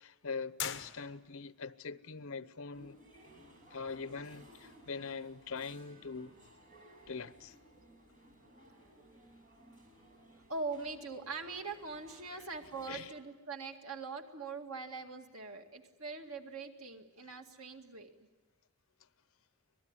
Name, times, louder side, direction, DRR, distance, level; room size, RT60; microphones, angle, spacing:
voice 1, 0.0-3.0 3.7-6.3 7.1-7.6 12.9-13.1, left 4 dB, 70° left, 0.9 m, -42 dB
sound 1, 0.6-1.6, left 9 dB, 50° left, 1.4 m, -41 dB
sound 2, 2.7-13.1, equal, 35° right, 6.2 m, -59 dB
voice 2, 8.6-9.0 10.2-18.1, right 4 dB, 80° right, 2.2 m, -43 dB
25.5 x 19.5 x 9.8 m
head